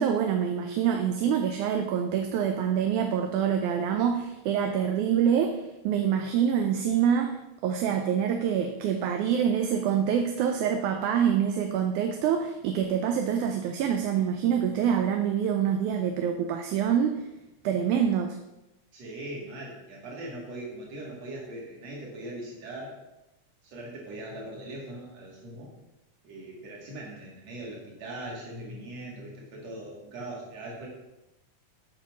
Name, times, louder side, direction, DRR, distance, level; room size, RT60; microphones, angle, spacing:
voice 1, 0.0-7.4 7.6-17.2 17.6-18.4, right 8 dB, 80° right, 4 dB, 2.1 m, -26 dB
voice 2, 18.9-23.0 23.6-25.7 26.2-30.9, right 1 dB, 55° right, -3 dB, 3.4 m, -40 dB
9.1 x 5.5 x 6.1 m, 0.96 s
omnidirectional pair, 3.6 m